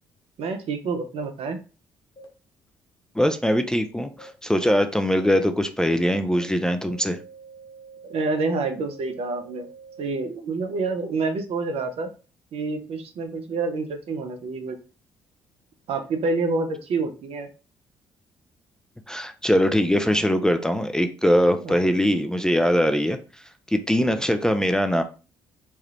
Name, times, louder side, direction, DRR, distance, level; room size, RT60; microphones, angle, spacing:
voice 1, 0.4-1.6 8.1-9.7 10.0-12.1 12.5-14.8 15.9-17.5 21.6-22.1 24.0-24.2, right 3 dB, 55° right, 7 dB, 0.7 m, -28 dB
sound 1, 1.2-1.3 2.2-2.3 3.2-3.3 4.2-4.3 5.2-5.3 5.8-5.9 6.3-6.4 6.8-10.0, right 4 dB, 45° left, 1.2 m, -46 dB
voice 2, 3.2-7.2 19.1-23.2 23.7-25.0, equal, 5° left, 7 dB, 0.4 m, -22 dB
3.3 x 2.3 x 2.9 m, 0.34 s
hypercardioid pair, 45°, 12 cm